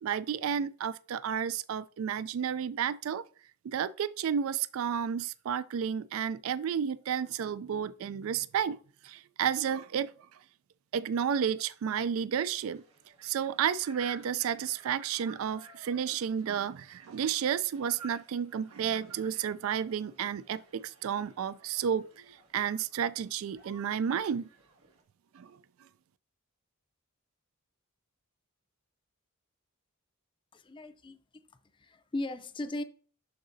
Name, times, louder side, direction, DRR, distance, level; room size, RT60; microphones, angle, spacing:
voice 1, 0.0-3.3 3.6-8.8 9.0-10.1 10.9-12.8 13.2-24.5 25.3-25.6, right 8 dB, 65° right, 0.3 m, -32 dB
sound 1, 12.5-25.0, right 4 dB, 85° right, 1.6 m, -55 dB
voice 2, 30.5-31.5 31.7-32.8, left 1 dB, 20° left, 0.5 m, -38 dB
11.0 x 3.9 x 2.7 m
head